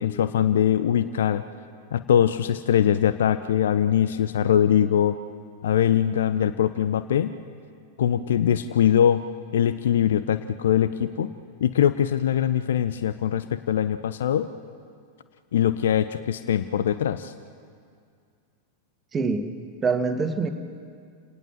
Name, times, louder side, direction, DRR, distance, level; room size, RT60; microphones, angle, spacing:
voice 1, 0.0-1.4 1.9-5.2 5.6-7.3 8.0-9.2 9.5-11.3 11.6-14.5 15.5-17.3, left 9 dB, 60° left, 13 dB, 0.7 m, -22 dB
voice 2, 19.1-19.5 19.8-20.5, right 4 dB, 20° right, 5 dB, 2.0 m, -24 dB
29.5 x 18.5 x 7.4 m, 2.2 s
figure-of-eight pair, 90°, 0 cm